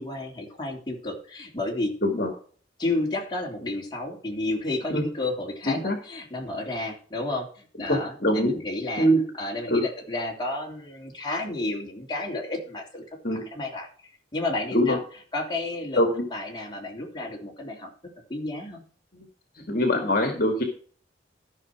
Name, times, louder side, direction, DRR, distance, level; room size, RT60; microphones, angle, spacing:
voice 1, 0.0-1.9 2.8-9.1 9.4-13.0 13.3-13.9 14.3-15.0 15.3-16.0 16.3-17.9 18.3-18.8, left 2 dB, 25° left, -2 dB, 3.2 m, -31 dB
voice 2, 5.6-6.0 7.9-8.5 9.0-9.2 9.7-9.8 13.2-13.4 14.7-15.0 16.0-16.2 19.7-20.6, equal, 55° left, 3 dB, 2.1 m, -23 dB
13.5 x 6.2 x 4.8 m, 0.44 s
head